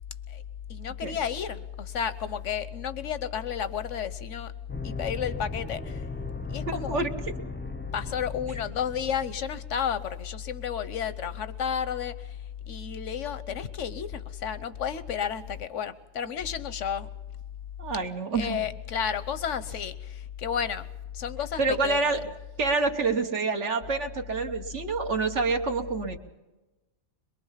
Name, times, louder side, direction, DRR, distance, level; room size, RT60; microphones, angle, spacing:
voice 1, 0.7-4.5 4.8-6.1 6.5-7.0 7.9-17.1 18.3-20.9 21.1-22.2, left 8 dB, 85° left, 14 dB, 1.3 m, -32 dB
sound 1, 4.7-9.6, left 3 dB, 15° left, 0.5 m, -37 dB
voice 2, 6.7-7.1 17.8-18.6 21.6-22.2 22.6-26.2, right 3 dB, 75° right, 4 dB, 1.6 m, -27 dB
23.0 x 22.5 x 5.8 m, 1.1 s
omnidirectional pair, 1.2 m